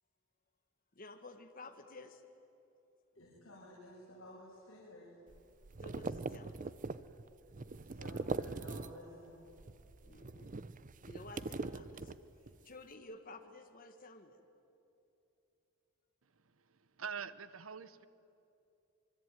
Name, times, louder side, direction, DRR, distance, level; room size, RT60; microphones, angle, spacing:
voice 1, 0.9-2.2 5.8-6.7 10.0-10.6 11.1-12.2 12.6-14.4, left 2 dB, 45° left, 5 dB, 1.6 m, -52 dB
voice 2, 3.1-5.2 7.7-9.5 10.3-10.4, left 1 dB, 75° left, -6 dB, 6.5 m, -54 dB
sound 1, 5.3-9.2 9.5-12.6, right 3 dB, 40° right, 0.7 m, -42 dB
voice 3, 16.4-18.0, right 6 dB, 80° right, 15 dB, 1.0 m, -45 dB
25.0 x 24.0 x 9.2 m, 2.9 s
head